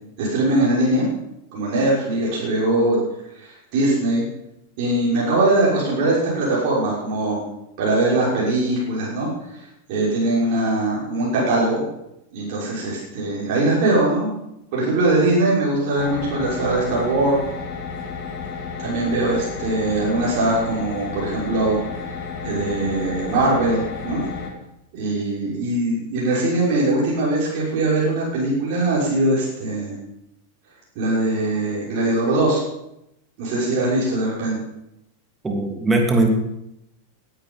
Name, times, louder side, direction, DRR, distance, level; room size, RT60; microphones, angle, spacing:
voice 1, 0.2-1.1 1.5-3.0 3.4-4.2 4.8-7.4 7.8-9.3 9.9-11.8 12.3-14.3 14.7-17.4 18.8-21.8 22.4-24.2 24.9-29.9 31.0-32.6 33.4-34.6, right 2 dB, 45° right, -5 dB, 6.1 m, -21 dB
sound 1, 16.0-24.5, left 5 dB, 40° left, 2.8 m, -32 dB
voice 2, 35.4-36.3, right 2 dB, 10° right, 2 dB, 2.8 m, -19 dB
18.0 x 11.0 x 5.7 m, 0.84 s
figure-of-eight pair, 90°, 0 cm